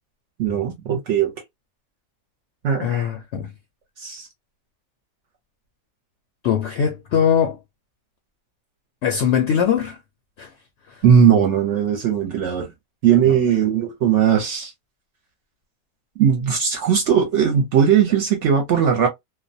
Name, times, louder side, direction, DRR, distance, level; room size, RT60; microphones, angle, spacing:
voice 1, 0.4-1.3 2.6-3.1 4.0-4.3 11.0-12.7 13.0-14.7 16.2-19.1, right 8 dB, 65° right, 0.8 m, -18 dB
voice 2, 2.8-3.5 6.4-7.6 9.0-10.0 10.4-10.5 10.9-11.0 13.3-13.4, left 8 dB, 65° left, 0.7 m, -21 dB
2.4 x 2.1 x 2.5 m
omnidirectional pair, 1.4 m